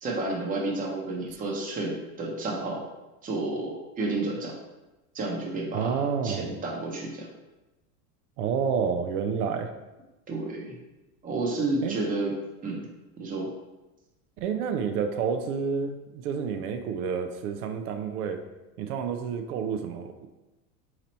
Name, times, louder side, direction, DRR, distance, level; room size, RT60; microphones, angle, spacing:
voice 1, 0.0-2.8 3.2-4.5 5.1-7.3 10.3-10.8 11.2-12.3 12.6-12.9 13.2-13.5, right 2 dB, 20° right, -1 dB, 0.8 m, -31 dB
voice 2, 5.7-6.5 8.4-9.7 11.8-12.0 14.4-18.4 18.8-20.3, right 6 dB, 80° right, 6 dB, 0.6 m, -29 dB
4.0 x 3.0 x 4.2 m, 1.0 s
supercardioid pair, 140°, 44 cm